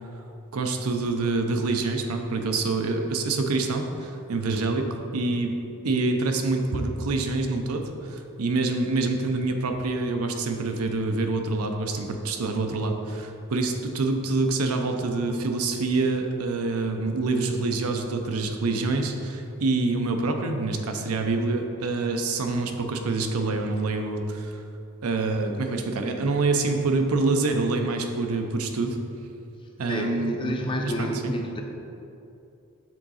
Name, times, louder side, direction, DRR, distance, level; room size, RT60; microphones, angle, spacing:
voice 1, 0.5-5.6 5.8-24.6 25.0-29.0 29.8-30.6 30.8-31.3, right 3 dB, 85° right, 4 dB, 0.6 m, -26 dB
voice 2, 29.9-31.6, equal, 25° left, 2 dB, 0.5 m, -29 dB
7.3 x 3.7 x 4.1 m, 2.8 s
head